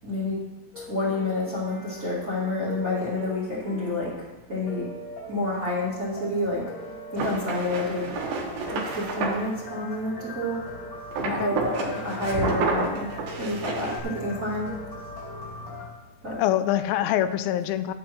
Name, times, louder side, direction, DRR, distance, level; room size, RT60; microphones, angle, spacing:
voice 1, 0.0-0.3 0.8-4.1 4.5-4.9 5.3-6.6 7.1-8.1 8.7-10.6 11.3-13.1 13.4-14.7 16.2-16.4, left 2 dB, 25° right, -7 dB, 2.1 m, -29 dB
sound 1, 0.7-15.9, left 2 dB, 50° left, 2.7 m, -41 dB
sound 2, 7.2-9.4 11.1-14.0, right 3 dB, 80° right, 3.1 m, -29 dB
voice 2, 11.2-11.6 16.4-17.9, left 12 dB, 90° left, 12 dB, 2.4 m, -25 dB
11.5 x 9.3 x 3.1 m, 1.1 s
omnidirectional pair, 4.1 m